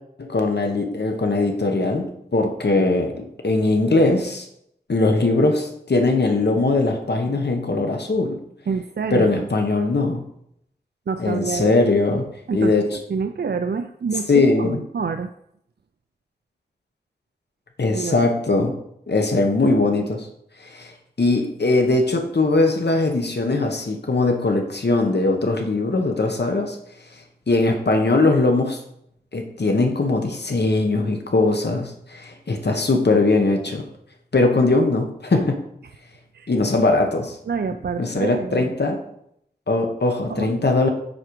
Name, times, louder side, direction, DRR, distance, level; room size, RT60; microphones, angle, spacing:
voice 1, 0.2-4.5 4.9-8.4 9.1-10.2 11.2-12.8 14.3-14.8 17.8-18.7 19.1-20.3 20.6-26.8 27.5-28.8 29.3-33.8 34.3-35.6 36.5-37.4 38.0-39.0 39.7-40.9, left 2 dB, 80° left, 3 dB, 1.0 m, -20 dB
voice 2, 8.7-9.5 11.1-11.8 12.5-15.3 17.9-18.2 36.3-36.5 37.5-38.8 40.3-40.5, right 5 dB, 75° right, 8 dB, 0.4 m, -27 dB
7.7 x 4.9 x 4.6 m, 0.74 s
wide cardioid pair, 55°, 17 cm